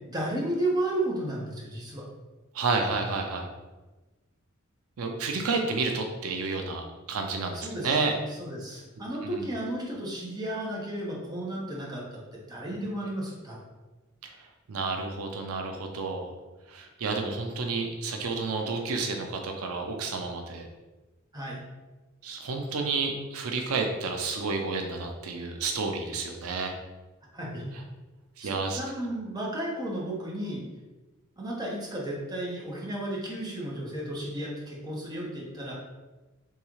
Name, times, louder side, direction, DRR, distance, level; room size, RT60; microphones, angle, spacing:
voice 1, 0.0-2.0 7.5-8.0 8.4-12.2 12.5-13.6 21.3-21.6 27.3-27.6 28.4-30.6 31.4-35.7, right 1 dB, 20° right, -4 dB, 0.9 m, -33 dB
voice 2, 2.5-3.5 5.0-8.1 9.0-9.5 12.7-12.8 14.2-16.3 16.7-20.7 22.2-26.7 27.7-27.8 28.4-28.8, right 4 dB, 90° right, 4 dB, 0.5 m, -31 dB
3.6 x 3.1 x 3.1 m, 1.2 s
head